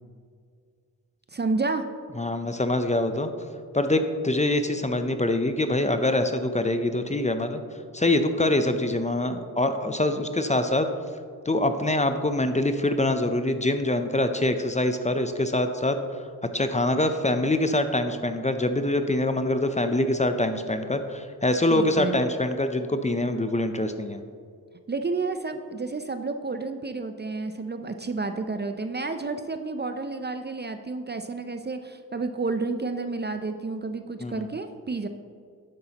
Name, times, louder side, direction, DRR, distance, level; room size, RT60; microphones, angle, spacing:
voice 1, 1.3-1.8 21.7-22.2 24.9-35.1, right 3 dB, 25° right, 8 dB, 0.5 m, -30 dB
voice 2, 2.2-3.3 3.7-7.6 7.9-10.9 11.5-16.0 16.5-24.2 34.2-34.5, left 1 dB, 20° left, 8 dB, 0.6 m, -24 dB
9.9 x 7.5 x 2.9 m, 2.2 s
cardioid pair, 55°, 38 cm